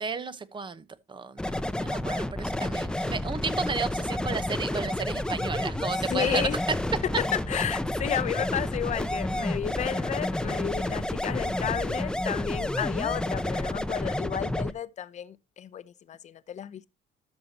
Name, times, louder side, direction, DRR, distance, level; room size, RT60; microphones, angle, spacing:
voice 1, 0.0-6.5, right 5 dB, 30° right, 1.0 m, -33 dB
sound 1, 1.4-14.7, left 1 dB, 5° left, 0.6 m, -30 dB
voice 2, 6.1-6.6 7.2-16.9, left 9 dB, 45° left, 0.7 m, -32 dB
12.5 x 6.7 x 2.9 m
cardioid pair, 110°, 17 cm